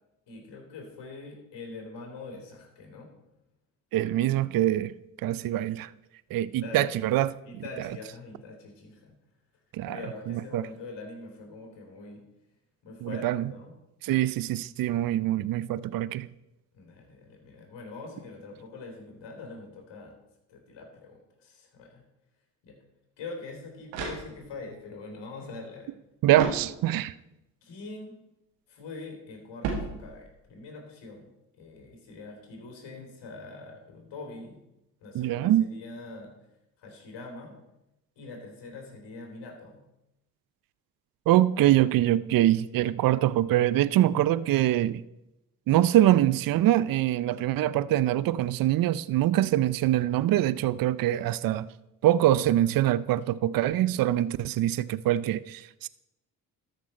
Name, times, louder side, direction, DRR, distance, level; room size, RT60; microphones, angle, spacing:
voice 1, 0.3-3.1 6.5-7.0 7.4-9.2 9.9-12.2 12.8-13.8 16.7-20.2 20.5-22.0 22.6-22.8 23.2-26.0 27.6-28.2 28.7-31.3 31.6-34.6 35.0-36.3 36.8-37.6 38.2-39.8, left 3 dB, 65° left, 3.5 m, -43 dB
voice 2, 3.9-4.9 5.2-5.9 6.3-7.3 9.7-10.0 10.3-10.6 13.0-13.5 14.0-16.3 26.2-27.1 35.1-35.7 41.3-45.0 45.7-51.7 52.0-55.9, right 13 dB, 50° right, 0.5 m, -24 dB
sound 1, 23.7-24.8 26.3-27.2 29.6-30.5, right 4 dB, 85° right, 1.9 m, -35 dB
13.0 x 6.1 x 4.4 m
hypercardioid pair, 50°, 45 cm